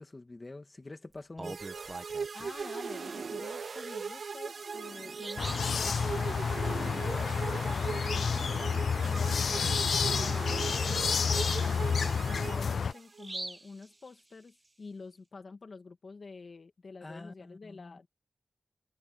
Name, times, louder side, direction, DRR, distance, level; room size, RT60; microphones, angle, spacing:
voice 1, 0.0-1.6 9.6-9.8 17.0-18.0, left 2 dB, 30° left, 2.0 m, -46 dB
Bird vocalization bird call bird song, 1.1-2.6 4.1-4.2 4.6-4.7 5.1-5.8 9.3-9.4 9.8-9.9 10.4-14.7, right 2 dB, 30° right, 1.5 m, -46 dB
sound 1, 1.4-13.3, right 5 dB, 70° right, 0.5 m, -39 dB
voice 2, 2.3-6.0 6.6-8.7 9.0-12.1 12.5-18.1, left 4 dB, 55° left, 2.1 m, -48 dB
sound 2, 5.4-12.9, left 6 dB, 90° left, 0.4 m, -30 dB
wide cardioid pair, 100°, 0 cm